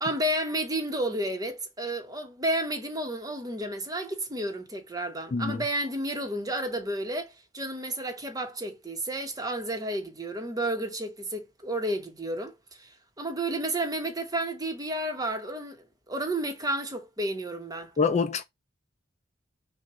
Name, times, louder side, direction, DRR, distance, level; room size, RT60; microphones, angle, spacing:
voice 1, 0.0-12.9 13.2-15.8 16.1-17.9, right 1 dB, 20° right, 1.1 m, -31 dB
voice 2, 5.3-5.6 18.0-18.4, left 4 dB, 35° left, 0.4 m, -25 dB
5.8 x 2.5 x 3.1 m
head